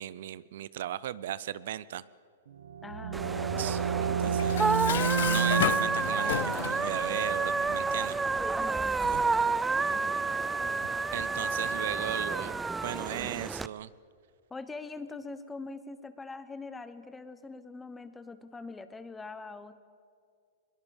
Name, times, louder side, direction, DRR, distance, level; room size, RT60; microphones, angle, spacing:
voice 1, 0.0-2.0 3.6-4.9 5.3-8.2 9.0-9.3 11.1-12.6 12.8-13.9, right 12 dB, 65° right, 20 dB, 0.5 m, -37 dB
sound 1, 2.5-8.1, right 7 dB, 85° right, 1.2 m, -32 dB
voice 2, 2.8-3.7 8.4-9.4 9.9-10.2 14.5-19.8, left 3 dB, 10° left, 12 dB, 1.1 m, -43 dB
sound 2, 3.1-13.7, right 4 dB, 10° right, 0.5 m, -30 dB
Dishes pots and pans, 4.4-6.9, left 11 dB, 70° left, 0.6 m, -32 dB
21.5 x 20.5 x 7.2 m, 2.3 s
hypercardioid pair, 140°, 0 cm